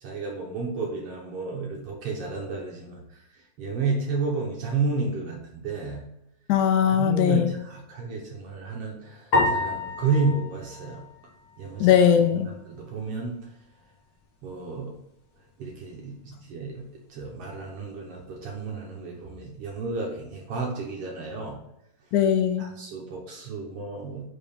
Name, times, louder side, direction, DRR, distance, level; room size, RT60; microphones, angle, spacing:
voice 1, 0.0-6.0 7.0-11.0 11.6-12.0 12.4-13.5 14.4-14.9 15.6-21.6 22.6-24.3, right 4 dB, 60° right, -1 dB, 1.7 m, -31 dB
voice 2, 6.5-7.5 11.8-12.5 22.1-22.6, left 9 dB, 80° left, 8 dB, 2.1 m, -20 dB
sound 1, 9.3-11.8, left 2 dB, 40° left, 1.7 m, -28 dB
5.7 x 4.9 x 5.1 m, 0.82 s
omnidirectional pair, 3.7 m